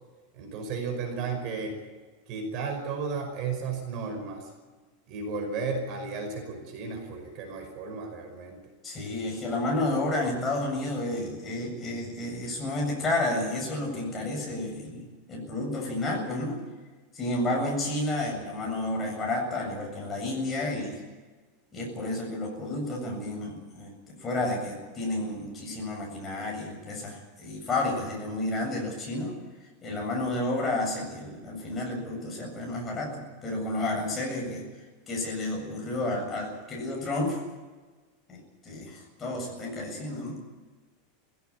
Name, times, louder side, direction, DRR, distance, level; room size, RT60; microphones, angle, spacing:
voice 1, 0.3-1.7 2.3-4.5 5.1-8.6, right 4 dB, 40° right, 4 dB, 5.4 m, -34 dB
voice 2, 8.8-15.0 15.3-16.6 17.1-21.0 21.7-29.3 29.8-34.7 35.1-37.4 38.3-40.4, left 2 dB, 15° left, -1 dB, 7.5 m, -31 dB
20.0 x 17.0 x 9.8 m, 1.3 s
supercardioid pair, 165°, 0 cm